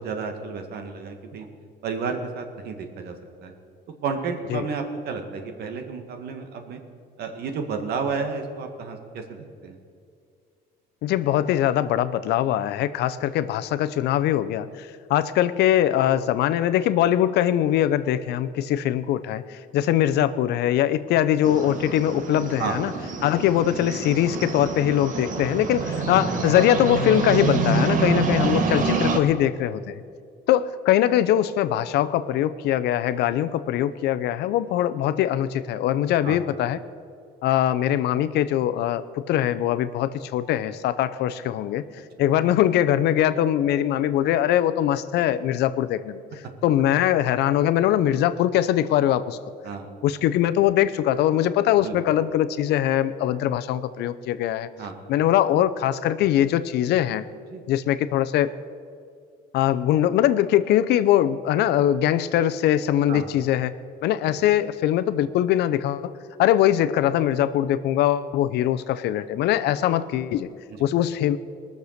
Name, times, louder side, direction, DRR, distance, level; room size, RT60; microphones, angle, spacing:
voice 1, 0.0-1.5 1.8-3.1 3.4-3.5 4.0-6.8 7.2-9.8 22.6-23.0 36.2-36.4 49.6-49.9 51.8-52.0 54.8-55.0 57.5-57.6 63.1-63.3 64.3-64.4 70.7-70.8, right 5 dB, 70° right, 5 dB, 1.7 m, -31 dB
voice 2, 11.0-22.9 23.2-29.9 30.5-36.8 37.4-41.8 42.2-46.2 46.6-49.4 50.0-54.7 55.1-57.3 57.7-58.5 59.5-63.7 64.0-66.1 66.4-70.5 70.8-71.4, left 11 dB, 75° left, 12 dB, 0.6 m, -22 dB
sound 1, 21.4-29.2, right 4 dB, 50° right, 1.5 m, -26 dB
20.0 x 6.8 x 6.5 m, 2.2 s
cardioid pair, 110°, 17 cm